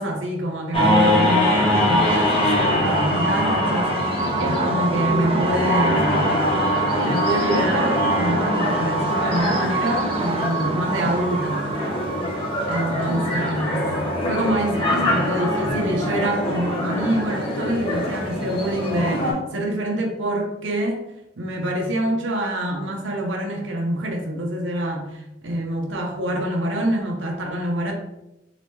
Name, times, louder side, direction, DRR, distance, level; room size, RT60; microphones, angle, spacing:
voice 1, 0.0-6.4 7.0-11.7 12.7-13.8 14.3-21.1 21.4-27.9, right 1 dB, 85° right, 1 dB, 0.9 m, -26 dB
sound 1, 0.7-19.3, left 1 dB, 30° left, 1.1 m, -23 dB
sound 2, 2.0-15.6, right 4 dB, 30° right, 0.3 m, -28 dB
3.8 x 3.3 x 3.2 m, 0.91 s
head